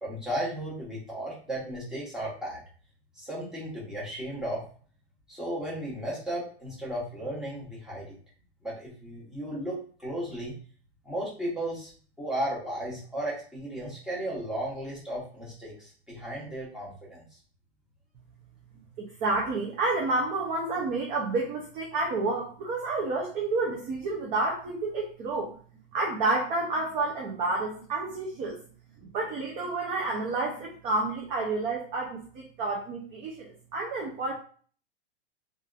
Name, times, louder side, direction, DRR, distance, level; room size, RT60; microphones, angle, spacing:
voice 1, 0.0-2.6 3.1-4.6 5.3-8.1 8.6-10.5 11.0-11.9 12.2-17.3, right 1 dB, ahead, -7 dB, 0.9 m, -35 dB
voice 2, 19.0-25.6 25.9-28.6 29.1-34.3, right 3 dB, 20° right, -2 dB, 0.4 m, -30 dB
2.6 x 2.4 x 2.3 m, 0.44 s
supercardioid pair, 140°, 32 cm